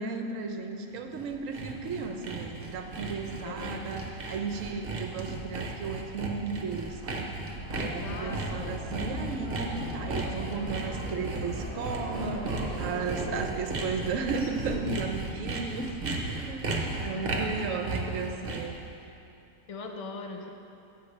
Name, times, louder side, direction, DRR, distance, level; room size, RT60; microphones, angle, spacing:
voice 1, 0.0-7.3 7.7-16.7 17.0-18.7, right 4 dB, 70° right, 5 dB, 1.0 m, -35 dB
Sawing, 1.0-18.8, right 3 dB, 45° right, 1.1 m, -35 dB
voice 2, 3.4-3.9 7.7-8.9 12.6-13.4 17.0-18.4 19.7-20.5, left 4 dB, 65° left, 3 dB, 0.3 m, -41 dB
sound 1, 7.6-14.9, equal, 10° right, 2.4 m, -40 dB
16.5 x 5.9 x 3.3 m, 2.9 s
omnidirectional pair, 1.5 m